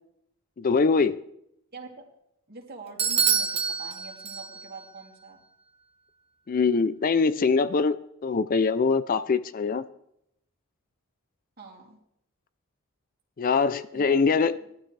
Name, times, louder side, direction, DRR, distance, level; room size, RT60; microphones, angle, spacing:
voice 1, 0.6-1.2 6.5-9.8 13.4-14.6, left 4 dB, 40° left, 14 dB, 0.4 m, -23 dB
voice 2, 1.7-2.0 2.5-5.4 11.6-12.0 13.9-14.7, right 3 dB, 45° right, -1 dB, 2.9 m, -45 dB
Bell / Doorbell, 3.0-4.8, right 6 dB, 25° right, 0.8 m, -26 dB
19.0 x 12.0 x 3.3 m, 0.77 s
head